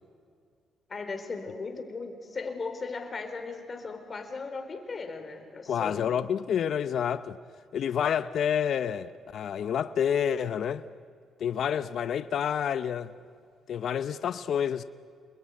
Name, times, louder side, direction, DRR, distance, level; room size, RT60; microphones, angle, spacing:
voice 1, 0.9-6.0, left 4 dB, 35° left, 4.3 m, -37 dB
voice 2, 5.7-7.4 7.7-10.8 11.4-13.1 13.7-14.8, left 8 dB, 65° left, 0.8 m, -28 dB
28.5 x 21.5 x 9.7 m
cardioid pair, 90°, 0 cm